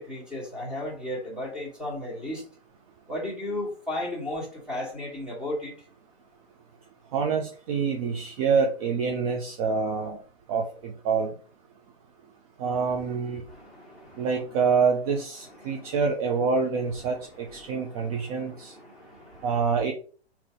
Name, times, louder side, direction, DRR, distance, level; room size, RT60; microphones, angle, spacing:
voice 1, 0.0-2.4 3.1-5.7 13.5-14.3 15.6-15.9 17.6-19.5, left 1 dB, 5° right, -4 dB, 1.5 m, -35 dB
voice 2, 7.1-10.2 10.5-11.3 12.6-13.4 14.2-18.7 19.4-19.9, right 5 dB, 35° right, 1 dB, 0.6 m, -26 dB
3.9 x 2.8 x 3.5 m, 0.41 s
hypercardioid pair, 130°, 32 cm